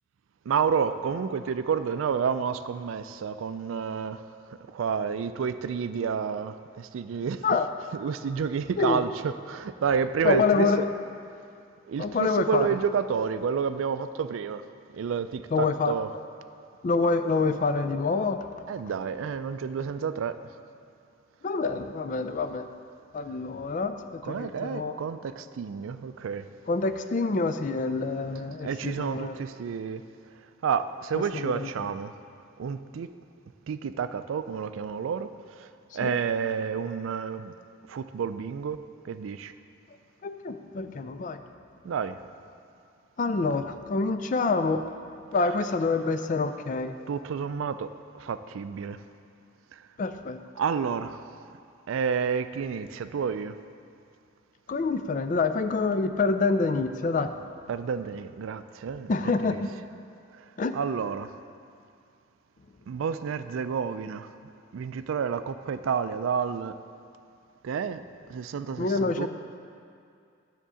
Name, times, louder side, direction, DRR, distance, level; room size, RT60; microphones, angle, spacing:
voice 1, 0.5-4.2 4.7-7.4 7.9-9.1 9.5-10.7 11.9-14.6 14.9-16.1 18.7-20.3 24.2-26.4 28.6-30.0 30.6-32.1 32.6-33.1 33.7-35.3 35.9-37.5 37.9-38.8 39.0-39.5 41.8-42.1 47.1-47.9 48.2-49.0 50.6-51.2 51.9-53.6 57.7-59.6 60.7-61.3 62.9-64.3 64.7-66.7 67.6-68.0 68.3-69.3, right 6 dB, 90° right, 11 dB, 0.3 m, -30 dB
voice 2, 10.2-10.8 12.0-12.8 15.5-15.9 16.8-18.4 21.4-22.7 23.1-25.0 26.7-29.4 31.1-31.7 36.0-36.2 40.2-41.4 43.2-44.9 45.3-46.9 50.0-50.4 54.7-57.3 59.1-59.7 60.6-60.8 68.8-69.3, left 4 dB, 40° left, 9 dB, 0.3 m, -26 dB
10.0 x 3.7 x 6.8 m, 2.4 s
head